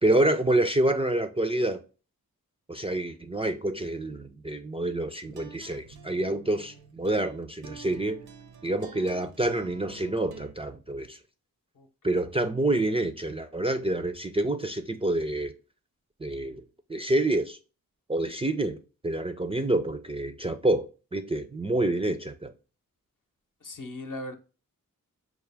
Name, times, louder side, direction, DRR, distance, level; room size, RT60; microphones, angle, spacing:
voice 1, 0.0-1.8 2.7-8.2 8.6-11.2 12.0-15.5 16.2-16.6 16.9-17.6 18.1-22.5, right 1 dB, 15° right, 0.3 m, -27 dB
sound 1, 5.2-10.5, right 5 dB, 75° right, 0.6 m, -49 dB
voice 2, 23.6-24.3, left 1 dB, 60° left, 0.8 m, -38 dB
4.6 x 2.1 x 3.3 m
cardioid pair, 40°, 37 cm